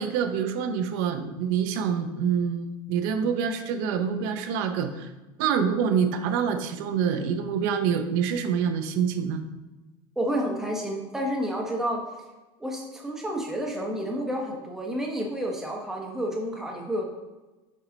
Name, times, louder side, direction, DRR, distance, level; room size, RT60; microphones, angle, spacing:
voice 1, 0.0-5.1 5.4-9.4, right 7 dB, 60° right, 7 dB, 0.8 m, -26 dB
voice 2, 10.2-12.0 12.6-17.0, equal, 5° right, -1 dB, 1.1 m, -30 dB
7.3 x 4.9 x 4.0 m, 1.1 s
cardioid pair, 180°, 12 cm